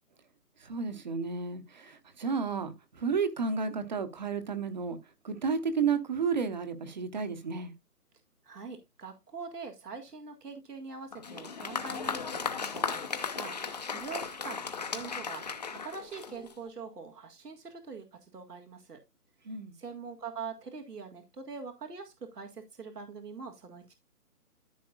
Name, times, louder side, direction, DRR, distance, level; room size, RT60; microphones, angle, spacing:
voice 1, 0.6-5.0 5.2-7.7 19.4-19.7, right 5 dB, 30° right, 1.0 m, -32 dB
voice 2, 8.4-19.0 19.7-23.9, right 5 dB, 85° right, 1.9 m, -44 dB
Applause, 11.1-16.7, left 5 dB, 30° left, 0.8 m, -36 dB
14.0 x 5.7 x 2.4 m
hypercardioid pair, 160°, 46 cm